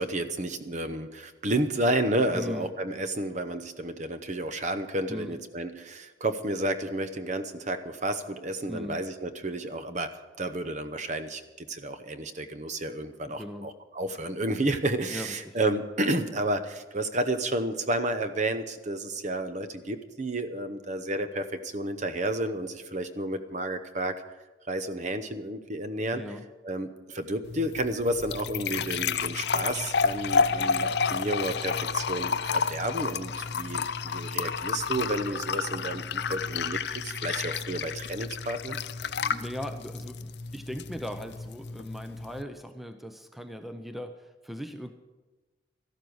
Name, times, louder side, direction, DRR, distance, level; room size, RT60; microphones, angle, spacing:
voice 1, 0.0-10.1 10.4-24.1 24.7-26.2 26.6-38.8, right 1 dB, 40° right, 10 dB, 0.8 m, -31 dB
voice 2, 2.3-2.7 5.1-5.4 8.7-9.0 13.3-13.7 15.1-15.6 26.1-26.5 39.0-44.9, equal, ahead, 7 dB, 0.6 m, -39 dB
sound 1, 27.4-42.4, left 5 dB, 60° left, 0.5 m, -30 dB
13.5 x 12.0 x 6.3 m, 1.2 s
head